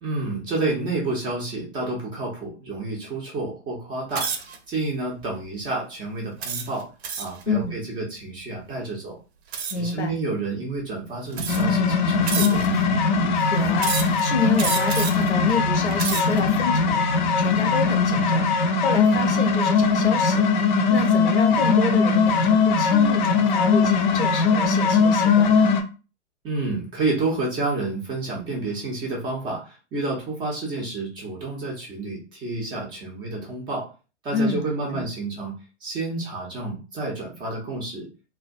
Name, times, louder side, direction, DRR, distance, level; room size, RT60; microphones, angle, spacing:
voice 1, 0.0-4.3 4.7-6.9 7.2-9.2 9.8-12.8 26.4-33.9 34.2-35.5 35.8-38.1, right 2 dB, 15° right, -2 dB, 0.4 m, -29 dB
sound 1, 4.1-4.6 5.2-5.5 6.4-7.4 9.5-9.9 10.8-10.9 11.3-11.8 12.3-12.8 13.8-14.2 14.6-15.3 15.8-16.4, right 6 dB, 65° right, 0.6 m, -29 dB
voice 2, 7.5-7.8 9.7-10.2 13.2-25.7 34.3-34.6 34.9-35.0, left 3 dB, 80° left, 6 dB, 0.7 m, -28 dB
sound 2, 11.5-25.8, left 5 dB, 45° left, 0.4 m, -20 dB
2.3 x 2.1 x 2.5 m, 0.33 s
figure-of-eight pair, 110°, 34 cm